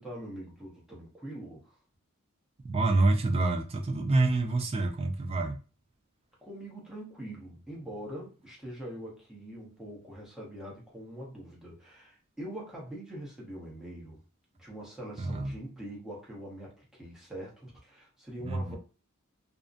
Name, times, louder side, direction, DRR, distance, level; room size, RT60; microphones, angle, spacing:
voice 1, 0.0-1.8 6.4-14.2 14.6-18.8, right 1 dB, ahead, 0.8 m, -43 dB
voice 2, 2.6-5.6 15.2-15.5 18.4-18.8, right 2 dB, 25° right, 0.3 m, -27 dB
2.5 x 2.1 x 2.5 m
head